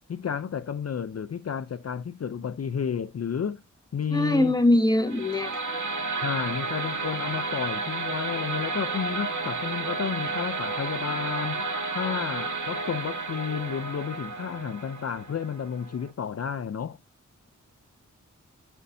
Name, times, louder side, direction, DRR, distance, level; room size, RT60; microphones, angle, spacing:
voice 1, 0.1-3.6 3.9-4.6 6.2-11.7 11.9-17.0, left 7 dB, 55° left, 0.5 m, -31 dB
voice 2, 4.1-5.6, left 1 dB, 15° left, 1.8 m, -22 dB
sound 1, 5.1-16.1, right 3 dB, 70° right, 1.9 m, -32 dB
12.5 x 5.5 x 2.7 m
cardioid pair, 55°, 31 cm